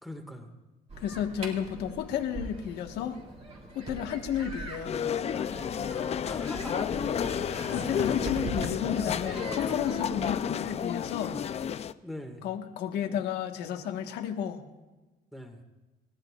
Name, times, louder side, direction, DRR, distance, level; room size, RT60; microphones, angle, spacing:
voice 1, 0.0-0.5 5.9-6.9 12.0-12.5 15.3-15.6, left 1 dB, ahead, 3 dB, 1.9 m, -42 dB
sound 1, 0.9-10.3, right 2 dB, 40° right, 3.2 m, -41 dB
voice 2, 1.0-3.2 3.7-5.0 7.4-11.4 12.4-14.6, left 9 dB, 80° left, 4 dB, 1.5 m, -32 dB
sound 2, 4.8-11.9, left 8 dB, 40° left, 0.5 m, -31 dB
28.0 x 13.5 x 2.5 m, 1.2 s
cardioid pair, 110°, 17 cm